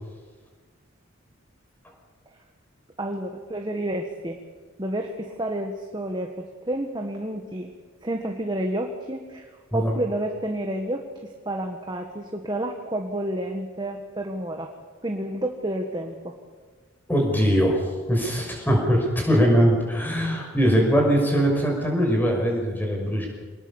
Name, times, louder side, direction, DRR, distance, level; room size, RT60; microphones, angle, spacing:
voice 1, 3.0-4.4 4.8-6.3 6.6-7.7 8.0-9.5 9.7-14.7 15.0-16.3, right 1 dB, 20° right, 3 dB, 1.6 m, -30 dB
voice 2, 17.1-23.3, equal, 10° left, 0 dB, 6.0 m, -21 dB
25.0 x 20.0 x 7.2 m, 1.4 s
head